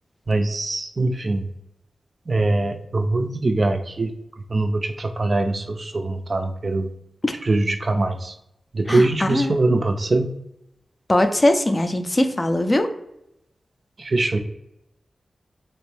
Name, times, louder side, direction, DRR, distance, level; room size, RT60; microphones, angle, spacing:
voice 1, 0.3-1.5 2.3-4.1 4.5-6.9 7.4-8.3 8.7-10.3 14.0-14.4, right 2 dB, 50° right, 6 dB, 0.4 m, -22 dB
voice 2, 8.9-9.5 11.1-12.9, left 1 dB, 30° left, 6 dB, 0.4 m, -20 dB
3.0 x 2.6 x 3.2 m, 0.83 s
cardioid pair, 70°, 0 cm